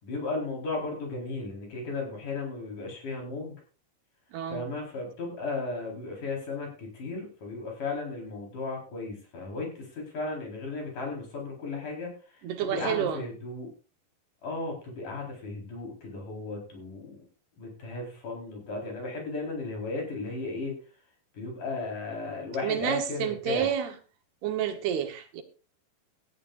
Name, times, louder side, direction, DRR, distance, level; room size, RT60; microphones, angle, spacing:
voice 1, 0.0-3.6 4.5-13.7 14.4-17.2 17.6-20.8 21.3-23.7, left 3 dB, 50° left, 5.8 m, -35 dB
voice 2, 4.3-4.7 12.4-13.2 22.6-23.9 24.4-25.4, right 9 dB, 75° right, 3.1 m, -29 dB
17.5 x 14.5 x 2.6 m
omnidirectional pair, 4.8 m